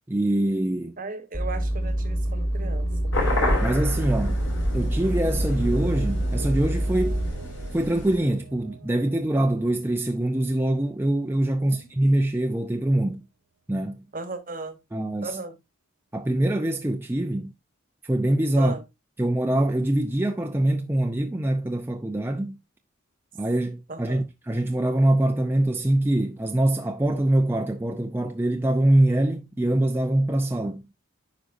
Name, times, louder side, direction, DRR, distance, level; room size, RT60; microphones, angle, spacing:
voice 1, 0.1-1.0 3.6-4.4 4.7-7.2 7.7-13.2 13.7-14.0 14.9-15.4 16.1-17.5 18.0-18.7 19.2-22.6 23.4-30.8, right 1 dB, 10° right, 0.4 m, -24 dB
voice 2, 1.0-3.1 11.6-11.9 14.1-14.8 15.2-15.6 18.6-18.8 23.9-24.2, right 3 dB, 45° right, 1.1 m, -36 dB
sound 1, 1.3-7.3, right 1 dB, 15° left, 1.6 m, -26 dB
sound 2, 1.3-11.2, right 5 dB, 85° right, 0.6 m, -43 dB
sound 3, 3.1-8.2, left 1 dB, 70° left, 5.0 m, -30 dB
9.4 x 5.2 x 2.6 m
head